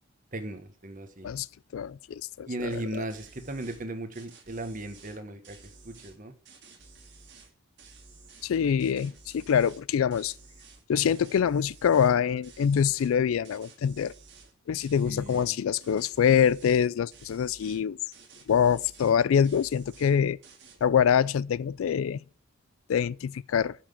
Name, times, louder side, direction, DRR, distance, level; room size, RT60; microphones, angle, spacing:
voice 1, 0.3-1.3 2.5-5.6 5.8-6.3 15.0-15.6, right 1 dB, 40° right, 1.1 m, -37 dB
voice 2, 1.7-2.7 2.9-3.0 8.4-10.3 10.9-14.1 14.7-18.0 18.5-20.4 20.8-22.2 22.9-23.7, left 8 dB, 75° left, 0.3 m, -25 dB
sound 1, 2.7-2.8 3.1-3.8 4.1-6.2 6.5-7.5 7.8-8.5 8.8-9.8 10.1-12.2 12.4-13.2 13.4-14.5 14.8-15.5 15.8-16.9 17.1-17.8 18.1-19.2 19.4-20.2 20.4-20.8, right 4 dB, 55° right, 2.0 m, -53 dB
7.2 x 5.9 x 6.8 m
head